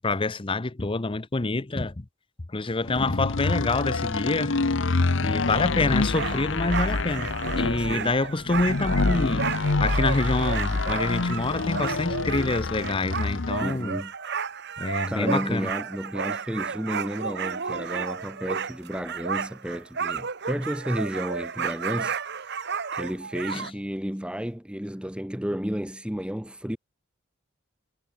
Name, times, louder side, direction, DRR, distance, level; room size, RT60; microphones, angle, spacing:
voice 1, 0.0-2.1 2.5-4.6 5.2-14.0 14.8-15.7 23.5-23.7, left 3 dB, 25° left, 0.7 m, -27 dB
sound 1, 2.9-13.7, left 3 dB, 65° left, 0.9 m, -27 dB
sound 2, 6.1-23.7, right 6 dB, 55° right, 1.5 m, -32 dB
voice 2, 7.8-8.1 13.6-14.1 15.1-22.2 22.5-22.6 22.9-26.8, equal, 5° right, 1.1 m, -32 dB
head